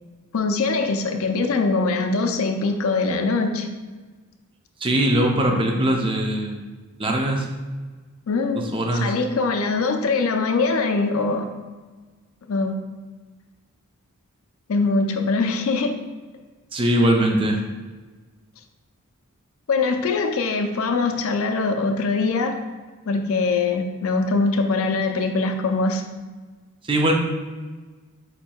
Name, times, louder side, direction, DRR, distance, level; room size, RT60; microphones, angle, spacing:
voice 1, 0.3-3.7 8.3-8.7 8.9-11.5 12.5-12.7 14.7-16.0 19.7-22.6 23.1-26.0, left 3 dB, 65° left, 5 dB, 0.5 m, -22 dB
voice 2, 4.8-6.7 7.0-7.5 8.7-9.1 16.7-17.6 26.9-27.1, right 1 dB, 25° right, 1 dB, 0.5 m, -21 dB
5.2 x 4.4 x 2.3 m, 1.3 s
head